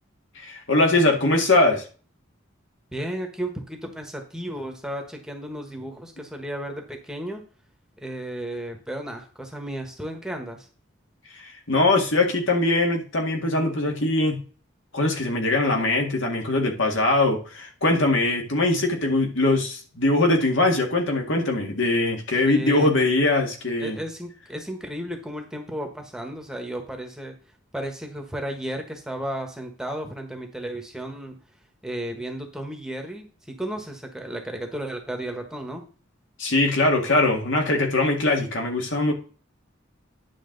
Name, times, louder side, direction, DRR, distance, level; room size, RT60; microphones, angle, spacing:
voice 1, 0.4-1.9 11.3-14.4 14.9-24.0 36.4-39.1, left 2 dB, 70° left, 2 dB, 2.0 m, -22 dB
voice 2, 2.9-7.4 8.0-10.7 22.4-22.9 23.8-27.3 27.7-31.4 31.8-35.9, right 1 dB, 5° right, 3 dB, 1.2 m, -34 dB
10.0 x 6.2 x 3.9 m, 0.38 s
head